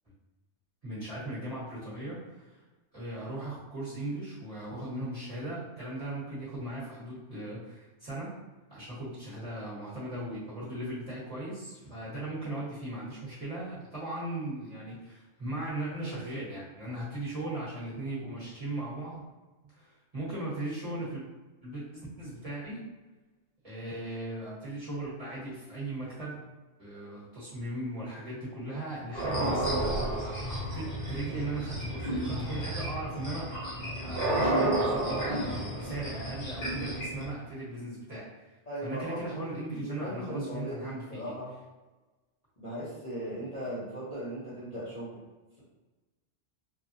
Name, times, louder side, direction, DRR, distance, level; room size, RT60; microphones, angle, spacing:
voice 1, 0.8-2.6 2.9-8.3 8.7-19.2 19.6-21.2 21.6-22.8 23.6-26.4 26.8-33.5 34.0-38.6 38.8-41.3, right 2 dB, 35° right, -10 dB, 1.2 m, -38 dB
sound 1, 29.1-37.2, right 1 dB, 70° left, 1.4 m, -31 dB
voice 2, 38.7-41.5 42.6-45.2, right 1 dB, 35° left, -10 dB, 1.0 m, -38 dB
3.3 x 2.2 x 2.7 m, 1.2 s
omnidirectional pair, 1.2 m